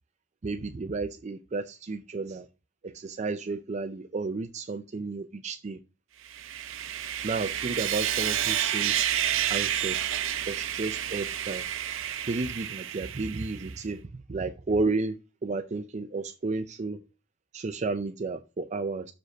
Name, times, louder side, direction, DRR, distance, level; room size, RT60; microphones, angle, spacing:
voice 1, 0.4-2.5 2.8-5.8 7.2-9.1 9.5-10.1 10.5-11.7 12.3-17.0 17.5-19.1, right 3 dB, 35° right, 0.4 m, -32 dB
Sawing, 6.3-13.7, right 11 dB, 85° right, 0.6 m, -30 dB
6.4 x 5.1 x 5.9 m
head